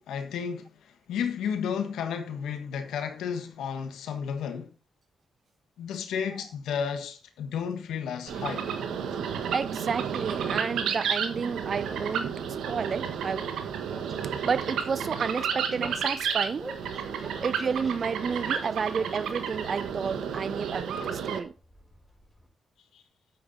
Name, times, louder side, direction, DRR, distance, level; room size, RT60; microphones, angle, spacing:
voice 1, 0.0-4.7 5.8-8.7 22.9-23.0, left 7 dB, 85° left, 1.5 m, -32 dB
sound 1, 8.3-21.4, right 7 dB, 85° right, 1.4 m, -32 dB
voice 2, 9.5-13.5 14.4-16.7 17.4-21.5, right 6 dB, 55° right, 0.4 m, -31 dB
Train, 13.8-22.5, right 1 dB, 10° right, 5.0 m, -48 dB
9.6 x 7.9 x 4.2 m
supercardioid pair, 60°, 0 cm